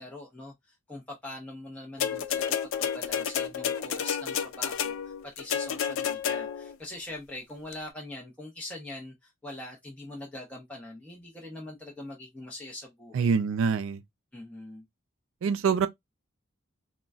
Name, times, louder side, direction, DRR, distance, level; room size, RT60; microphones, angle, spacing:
voice 1, 0.0-5.0 5.2-13.4 14.3-14.8, left 1 dB, 5° left, 0.7 m, -43 dB
sound 1, 2.0-6.8 7.7-7.8, left 8 dB, 65° left, 0.4 m, -30 dB
voice 2, 13.1-14.0 15.4-15.9, right 6 dB, 65° right, 0.3 m, -25 dB
3.8 x 2.1 x 2.3 m
head